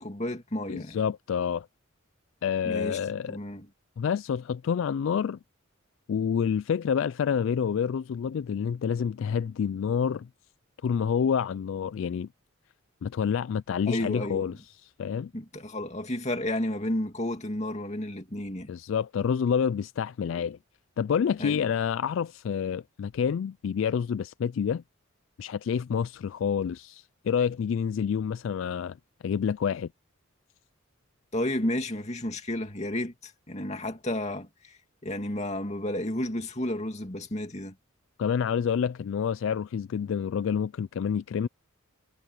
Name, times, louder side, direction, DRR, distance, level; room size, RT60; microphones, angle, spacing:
voice 1, 0.0-1.0 2.6-3.7 13.9-14.6 15.3-18.7 21.4-21.7 31.3-37.7, left 1 dB, 30° left, 2.5 m, -32 dB
voice 2, 0.7-1.7 2.4-3.4 4.0-5.4 6.1-10.3 10.8-12.3 13.0-14.5 14.8-15.3 18.7-20.6 21.0-24.8 25.4-29.0 29.2-29.9 38.2-41.5, left 7 dB, 65° left, 0.3 m, -28 dB
head